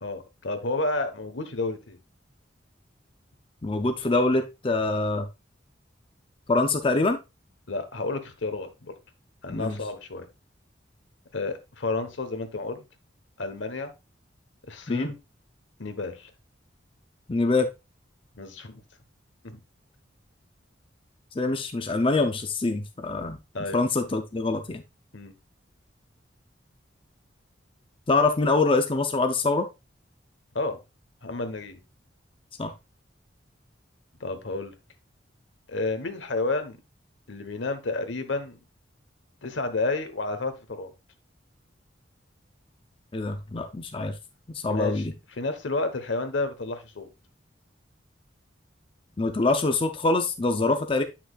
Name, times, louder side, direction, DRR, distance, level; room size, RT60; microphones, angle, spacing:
voice 1, 0.0-2.0 7.7-8.9 9.4-10.3 11.3-12.8 13.4-13.9 14.7-15.2 15.8-16.3 18.4-18.8 19.4-19.6 23.5-23.8 25.1-25.3 30.5-30.8 31.2-31.8 34.2-34.7 35.7-36.8 37.3-38.6 39.4-40.9 44.7-45.1 45.4-47.1 50.7-50.8, left 3 dB, 80° left, 9 dB, 1.1 m, -31 dB
voice 2, 3.6-5.3 6.5-7.2 9.5-9.8 14.9-15.1 17.3-17.7 21.3-23.4 23.7-24.8 28.1-29.7 32.6-32.7 43.1-44.1 44.5-45.1 49.2-51.0, left 3 dB, 30° left, 6 dB, 0.5 m, -24 dB
8.3 x 5.8 x 2.3 m, 0.25 s
head